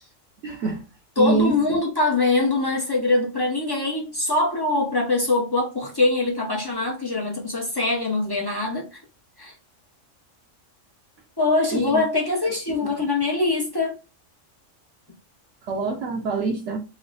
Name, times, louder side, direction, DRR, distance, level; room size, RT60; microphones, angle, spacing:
voice 1, 0.4-0.8 1.2-1.6 11.7-12.0 12.8-12.9 15.7-16.8, right 4 dB, 70° right, 1.0 m, -25 dB
voice 2, 1.2-8.9 9.4-9.5 11.4-14.0, left 2 dB, 25° left, 0.5 m, -23 dB
3.2 x 2.0 x 3.8 m
omnidirectional pair, 1.3 m